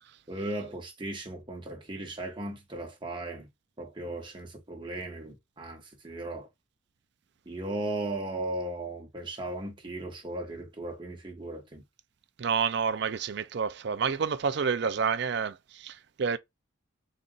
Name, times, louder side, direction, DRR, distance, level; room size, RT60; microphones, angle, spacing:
voice 1, 0.3-3.5 3.8-6.5 7.4-11.8, right 2 dB, 25° right, 1.2 m, -37 dB
voice 2, 12.4-16.4, right 6 dB, 60° right, 0.4 m, -29 dB
4.1 x 2.5 x 3.8 m
head